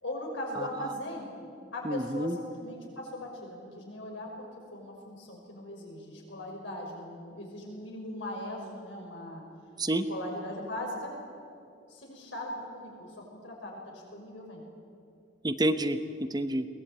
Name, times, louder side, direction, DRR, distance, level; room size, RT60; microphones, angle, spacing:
voice 1, 0.0-1.3 1.7-9.4 10.1-11.2 11.9-14.6, left 1 dB, 75° left, -1 dB, 5.9 m, -39 dB
voice 2, 1.8-2.4 9.8-10.1 15.4-16.7, right 1 dB, 20° right, 10 dB, 0.8 m, -29 dB
22.0 x 18.0 x 8.8 m, 2.4 s
head